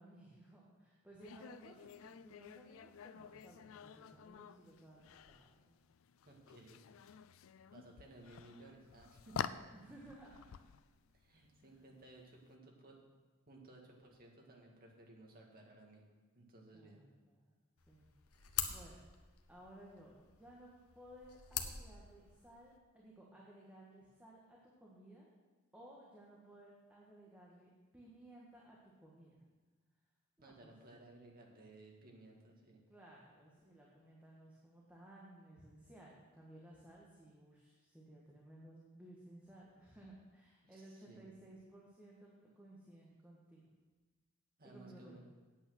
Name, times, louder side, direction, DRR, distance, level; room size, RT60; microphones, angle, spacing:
voice 1, 0.0-5.7 9.7-10.7 11.6-11.8 16.7-17.5 17.9-18.1 18.4-19.0 19.5-25.3 25.7-29.4 30.4-30.7 32.9-43.6 44.6-45.2, right 1 dB, 5° right, -5 dB, 1.4 m, -58 dB
sound 1, 1.2-12.5, left 7 dB, 65° left, 0.4 m, -50 dB
voice 2, 6.3-6.8 7.7-9.5 11.1-13.0 13.5-16.0 16.3-17.0 30.4-32.8 40.6-41.2 44.6-45.2, right 2 dB, 45° right, 0 dB, 1.9 m, -58 dB
sound 2, 17.8-22.8, left 9 dB, 85° left, 0.9 m, -45 dB
8.6 x 8.4 x 6.3 m, 1.3 s
head